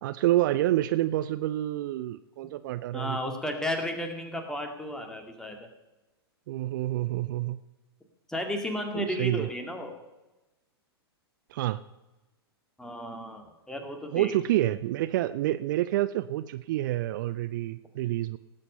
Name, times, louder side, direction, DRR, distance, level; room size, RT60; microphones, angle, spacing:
voice 1, 0.0-3.2 6.5-7.6 8.9-9.5 11.5-11.8 14.1-18.4, right 14 dB, 50° right, 14 dB, 0.5 m, -28 dB
voice 2, 2.9-5.7 8.3-10.0 12.8-14.3, left 1 dB, 5° left, 4 dB, 2.2 m, -33 dB
18.5 x 7.7 x 5.6 m, 1.1 s
figure-of-eight pair, 105°, 13 cm